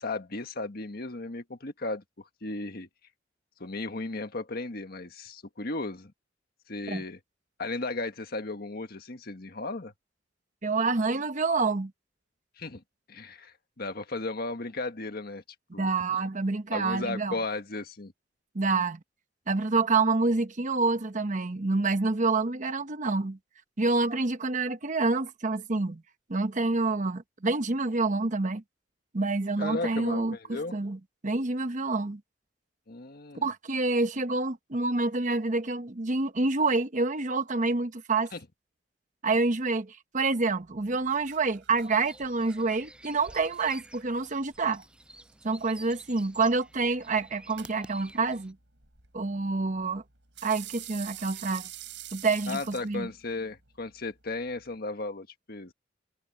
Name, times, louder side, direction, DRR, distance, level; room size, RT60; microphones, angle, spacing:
voice 1, 0.0-2.9 3.6-6.1 6.7-7.2 7.6-9.9 12.6-12.8 13.1-15.4 15.7-15.9 16.7-18.1 29.6-30.8 32.9-33.5 38.3-38.4 52.5-55.7, left 3 dB, 55° left, 1.6 m, -35 dB
voice 2, 10.6-11.9 15.8-17.3 18.5-19.0 19.5-23.4 23.8-26.0 26.3-28.6 29.1-32.2 33.4-38.3 39.2-44.8 45.4-48.6 49.1-50.0 50.4-51.7 52.1-53.1, right 3 dB, 45° right, 1.0 m, -27 dB
sound 1, 40.5-54.8, right 12 dB, 80° right, 5.2 m, -49 dB
sound 2, 41.8-48.5, right 1 dB, 5° right, 7.7 m, -52 dB
head